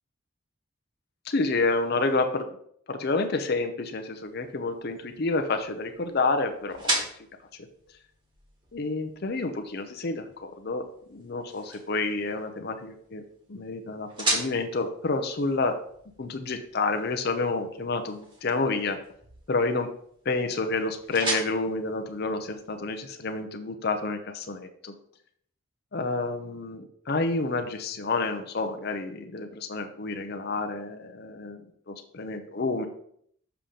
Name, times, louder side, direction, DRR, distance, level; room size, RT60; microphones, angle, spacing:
voice 1, 1.3-2.5 2.9-7.1 8.7-13.2 13.5-15.8 16.2-19.0 19.5-19.9 20.3-24.9 25.9-31.6 31.9-32.9, left 3 dB, 50° left, 6 dB, 0.6 m, -29 dB
sound 1, 4.1-23.0, right 2 dB, 25° right, 1.5 m, -38 dB
6.8 x 5.7 x 3.8 m, 0.66 s
head